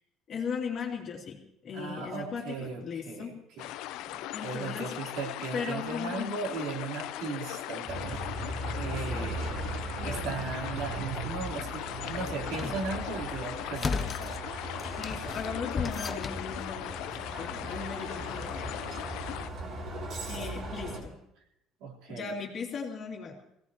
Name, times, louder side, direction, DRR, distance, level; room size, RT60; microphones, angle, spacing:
voice 1, 0.3-3.3 4.3-4.9 5.5-6.3 8.8-9.4 9.9-10.3 15.0-18.9 20.3-21.2 22.1-23.4, left 5 dB, 40° left, 0 dB, 2.7 m, -37 dB
voice 2, 1.7-3.6 4.1-9.5 10.0-14.4 21.8-22.3, right 4 dB, 70° right, -2 dB, 3.7 m, -37 dB
sound 1, 3.6-19.5, left 14 dB, 75° left, 0.6 m, -39 dB
Bus, 7.9-21.0, right 2 dB, 45° right, 3.9 m, -38 dB
sound 2, 12.4-12.9 13.7-14.4 14.8-16.5, left 4 dB, 20° left, 0.7 m, -35 dB
22.5 x 17.0 x 3.0 m, 0.81 s
cardioid pair, 160°, 0 cm